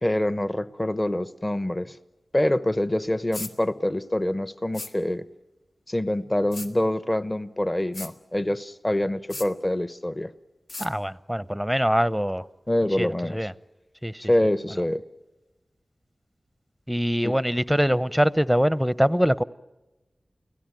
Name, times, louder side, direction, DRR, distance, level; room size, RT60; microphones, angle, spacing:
voice 1, 0.0-2.0 2.3-5.3 5.9-10.3 12.7-13.4 14.3-15.0 17.2-17.4, left 1 dB, 25° left, 13 dB, 1.0 m, -25 dB
sound 1, 3.3-3.5 4.7-4.9 6.5-6.7 7.9-8.1 9.3-9.5 10.7-10.9, left 2 dB, 75° left, 2.0 m, -36 dB
voice 2, 10.8-12.4 13.0-13.5 14.0-14.2 16.9-19.4, equal, ahead, 16 dB, 0.7 m, -23 dB
29.5 x 17.5 x 9.2 m, 1.1 s
wide cardioid pair, 55°, 0 cm